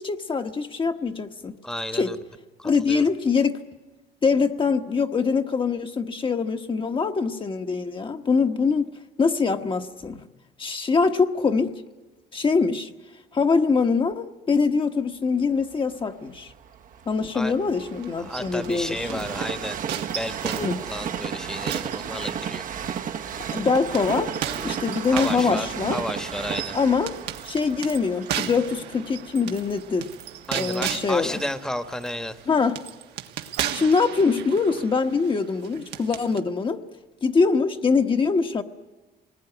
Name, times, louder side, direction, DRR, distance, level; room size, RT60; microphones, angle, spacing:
voice 1, 0.0-1.5 1.9-2.1 2.6-3.6 4.2-8.9 9.2-10.2 10.6-11.8 12.3-12.9 13.3-16.5 17.1-19.2 20.6-20.8 23.5-24.3 24.6-26.0 26.7-27.1 27.4-30.1 30.5-31.4 32.5-32.8 33.7-36.8 37.2-38.6, left 4 dB, 30° left, 5 dB, 1.2 m, -23 dB
voice 2, 1.6-2.2 2.6-3.0 17.3-17.5 18.2-22.6 25.1-25.7 25.9-26.8 30.5-32.4, left 1 dB, 5° left, 10 dB, 1.3 m, -32 dB
Train, 15.6-31.5 32.1-32.2, right 8 dB, 50° right, 1.1 m, -34 dB
sound 1, 17.8-19.4 19.9-22.7 23.3-36.4, right 11 dB, 80° right, 1.6 m, -36 dB
26.5 x 19.5 x 9.8 m, 1.2 s
cardioid pair, 110°, 17 cm